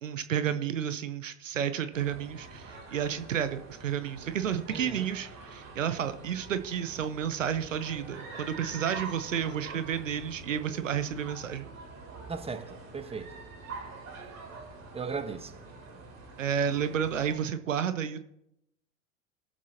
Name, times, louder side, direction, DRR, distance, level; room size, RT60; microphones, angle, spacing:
voice 1, 0.0-11.7 16.4-18.2, right 8 dB, 85° right, 0.8 m, -31 dB
sound 1, 1.9-17.4, right 4 dB, 45° right, 3.0 m, -45 dB
voice 2, 4.7-5.1 12.3-13.3 14.9-15.5, right 5 dB, 15° right, 1.2 m, -37 dB
20.5 x 7.4 x 2.8 m
hypercardioid pair, 80°, 37 cm